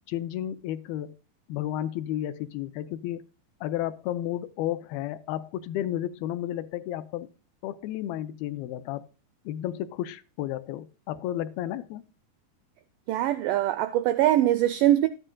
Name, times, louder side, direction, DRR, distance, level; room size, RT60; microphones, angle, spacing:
voice 1, 0.1-1.1 1.5-3.3 3.6-7.3 7.6-9.1 9.5-12.1, left 12 dB, 80° left, 2.4 m, -32 dB
voice 2, 13.1-15.1, right 13 dB, 85° right, 1.9 m, -22 dB
13.0 x 9.9 x 2.2 m
omnidirectional pair, 4.4 m